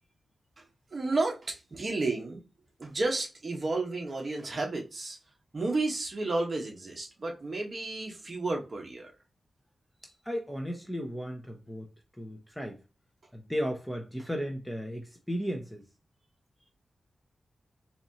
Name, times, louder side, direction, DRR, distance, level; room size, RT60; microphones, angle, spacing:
voice 1, 0.9-2.4 2.8-5.2 5.5-9.1, right 2 dB, 35° right, 1.0 m, -32 dB
voice 2, 10.3-11.8 12.2-12.8 13.3-15.8, equal, 5° left, 0.5 m, -35 dB
4.1 x 2.9 x 2.7 m
wide cardioid pair, 140°, 0 cm